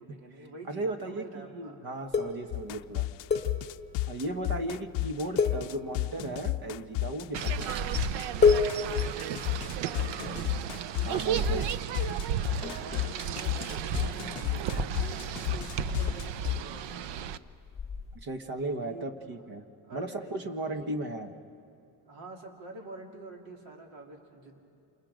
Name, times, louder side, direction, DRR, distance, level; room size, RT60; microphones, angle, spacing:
voice 1, 0.0-2.4 4.3-4.7 7.5-7.7 9.8-10.4 12.8-17.2 18.7-19.4 19.8-20.9 22.1-24.6, right 3 dB, 85° right, 1 dB, 3.5 m, -47 dB
voice 2, 0.7-3.0 4.1-8.0 11.0-11.7 18.1-19.6 19.9-21.3, right 2 dB, 50° right, 7 dB, 1.5 m, -36 dB
sound 1, 2.1-4.1 4.4-4.6 4.9-5.1 5.4-6.5 7.2-7.7 8.0-8.1 8.4-10.4 11.0-11.7 12.0-18.2, left 5 dB, 15° left, 1.4 m, -31 dB
sound 2, 2.5-16.6, left 17 dB, 65° left, 0.5 m, -32 dB
sound 3, 7.3-17.4, right 9 dB, 70° right, 0.7 m, -34 dB
28.0 x 27.5 x 5.1 m, 2.7 s
cardioid pair, 180°, 45 cm